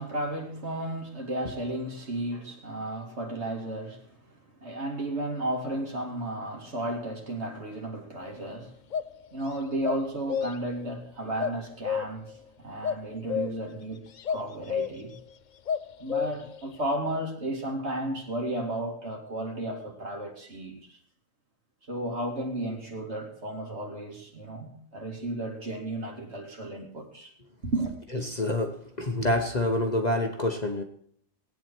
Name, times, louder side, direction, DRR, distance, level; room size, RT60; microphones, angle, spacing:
voice 1, 0.0-8.8 9.3-15.1 16.0-21.0 21.9-27.3 27.6-27.9, right 1 dB, 50° right, 2.8 m, -33 dB
sound 1, 8.2-8.4 8.9-9.0 9.8-10.8 11.4-12.4 12.8-13.8 14.2-15.2 15.7-16.6, left 7 dB, 60° left, 0.4 m, -31 dB
voice 2, 28.2-30.8, left 1 dB, 30° left, 1.1 m, -27 dB
19.0 x 9.3 x 4.6 m
omnidirectional pair, 1.5 m